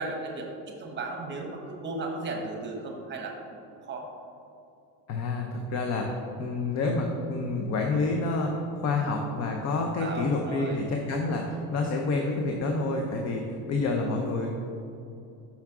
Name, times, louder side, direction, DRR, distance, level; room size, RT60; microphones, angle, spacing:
voice 1, 0.0-4.1 10.0-10.8, right 3 dB, 25° right, 1 dB, 0.9 m, -36 dB
voice 2, 5.1-14.7, left 3 dB, 40° left, 2 dB, 0.6 m, -28 dB
5.9 x 5.6 x 3.6 m, 2.7 s
cardioid pair, 130°, 41 cm